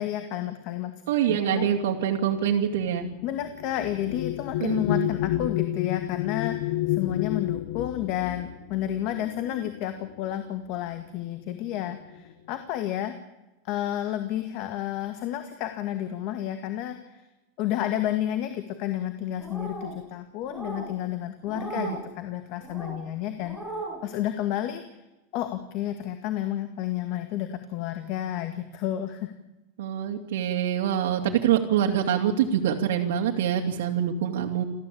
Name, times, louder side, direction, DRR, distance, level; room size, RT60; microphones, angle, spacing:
voice 1, 0.0-0.9 1.3-1.7 3.2-13.1 13.6-17.2 17.6-23.6 24.0-24.8 25.3-29.3, left 12 dB, 40° left, 8 dB, 1.8 m, -31 dB
voice 2, 1.1-3.1 4.6-5.1 21.6-21.9 29.8-34.6, right 9 dB, 85° right, 1 dB, 2.6 m, -25 dB
sound 1, 1.4-10.3 11.2-11.4 11.7-12.3, left 15 dB, 65° left, 0.9 m, -31 dB
sound 2, 19.4-19.9 20.4-20.9 21.5-22.0 22.6-23.0 23.4-24.0, right 2 dB, ahead, 4.9 m, -36 dB
29.0 x 13.5 x 8.7 m, 1.0 s
supercardioid pair, 180°, 0 cm